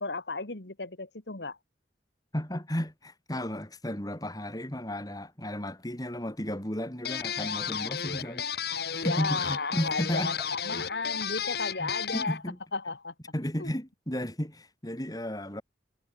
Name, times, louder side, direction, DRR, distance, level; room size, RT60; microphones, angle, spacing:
voice 1, 0.0-1.6 9.0-12.4 12.7-13.1 13.6-13.7, left 3 dB, 75° left, 2.1 m, -34 dB
voice 2, 2.3-10.3 10.7-10.9 11.8-12.6 13.3-15.6, equal, 20° left, 3.7 m, -34 dB
sound 1, 7.0-12.4, left 7 dB, 60° left, 2.8 m, -33 dB
head